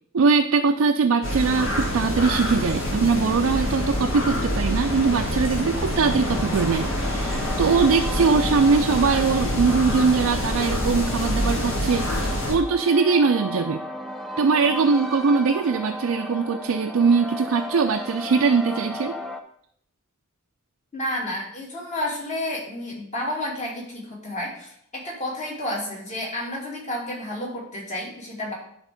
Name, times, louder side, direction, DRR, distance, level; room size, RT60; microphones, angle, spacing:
voice 1, 0.1-13.8 14.4-19.2, right 5 dB, 80° right, 4 dB, 0.4 m, -21 dB
sound 1, 1.2-12.6, left 1 dB, 65° left, 1.9 m, -26 dB
sound 2, 5.9-19.4, left 1 dB, ahead, 0.5 m, -36 dB
voice 2, 20.9-28.5, left 1 dB, 35° left, -3 dB, 2.6 m, -31 dB
10.5 x 3.6 x 5.1 m, 0.69 s
head